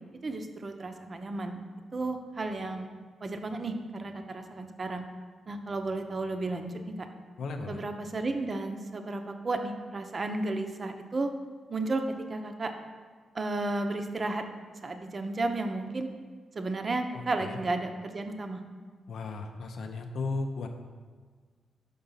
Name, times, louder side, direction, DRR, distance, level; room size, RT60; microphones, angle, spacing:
voice 1, 0.2-1.6 1.9-2.9 3.2-5.0 5.5-7.1 7.7-11.3 11.7-12.0 12.3-12.7 13.3-14.4 14.8-16.1 16.5-18.6, right 2 dB, 40° right, 6 dB, 0.6 m, -33 dB
voice 2, 7.4-7.8 17.1-17.6 19.1-20.7, left 3 dB, 75° left, 5 dB, 0.6 m, -35 dB
5.3 x 3.9 x 5.6 m, 1.5 s
cardioid pair, 80°, 0 cm